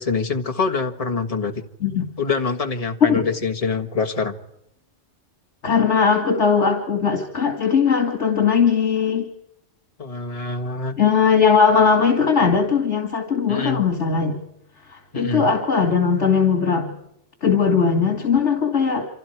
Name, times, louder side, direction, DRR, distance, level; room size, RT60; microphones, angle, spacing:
voice 1, 0.0-1.6 2.2-4.3 10.0-11.0 13.5-13.8 15.1-15.5, left 4 dB, 30° left, 4 dB, 1.7 m, -25 dB
voice 2, 5.6-9.2 11.0-14.4 14.9-16.9 17.4-19.1, left 6 dB, 70° left, 4 dB, 2.7 m, -19 dB
29.0 x 26.0 x 4.7 m, 0.81 s
omnidirectional pair, 1.2 m